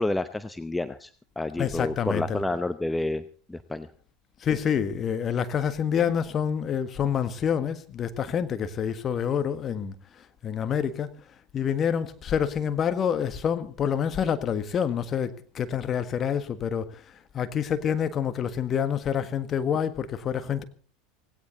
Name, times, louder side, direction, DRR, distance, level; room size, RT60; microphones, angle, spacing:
voice 1, 0.0-3.9, left 2 dB, 10° left, 0.8 m, -30 dB
voice 2, 1.6-2.4 4.4-9.9 10.4-11.1 11.5-17.0 17.3-20.6, left 8 dB, 35° left, 1.6 m, -27 dB
17.5 x 17.0 x 4.0 m
figure-of-eight pair, 75°, 0 cm